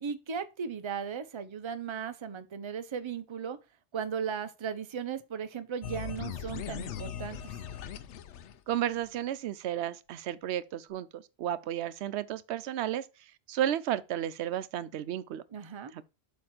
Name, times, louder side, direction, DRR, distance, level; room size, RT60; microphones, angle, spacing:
voice 1, 0.0-3.6 3.9-7.5 15.5-15.9, right 7 dB, 30° right, 0.6 m, -36 dB
sound 1, 5.8-9.1, left 8 dB, 80° left, 0.9 m, -39 dB
voice 2, 8.7-13.1 13.5-15.4 15.9-16.0, right 11 dB, 70° right, 0.8 m, -33 dB
7.6 x 3.2 x 5.9 m
omnidirectional pair, 1.2 m